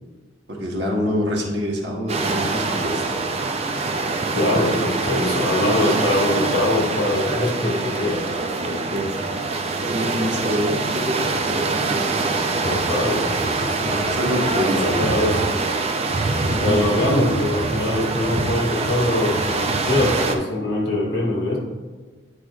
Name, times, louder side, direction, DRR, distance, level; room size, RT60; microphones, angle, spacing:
voice 1, 0.5-3.2 8.9-9.3 9.8-12.1 13.9-15.3 16.5-16.9, equal, 60° right, -1 dB, 1.2 m, -26 dB
sound 1, 2.1-20.4, right 3 dB, 30° right, 0.5 m, -24 dB
voice 2, 4.3-8.3 8.6-8.9 12.6-15.5 16.4-21.6, left 1 dB, 60° left, -4 dB, 1.9 m, -23 dB
9.0 x 4.9 x 2.4 m, 1.3 s
head